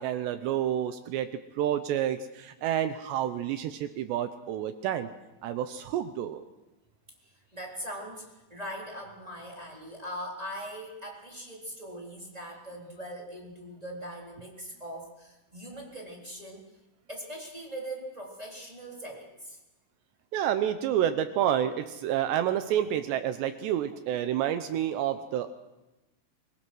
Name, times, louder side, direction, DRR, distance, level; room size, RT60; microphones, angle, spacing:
voice 1, 0.0-5.1 5.4-6.4 20.3-25.5, right 10 dB, 80° right, 9 dB, 2.6 m, -29 dB
voice 2, 7.2-16.6 17.1-19.6, equal, 10° right, -2 dB, 3.0 m, -41 dB
24.5 x 20.0 x 6.2 m, 1.0 s
omnidirectional pair, 5.7 m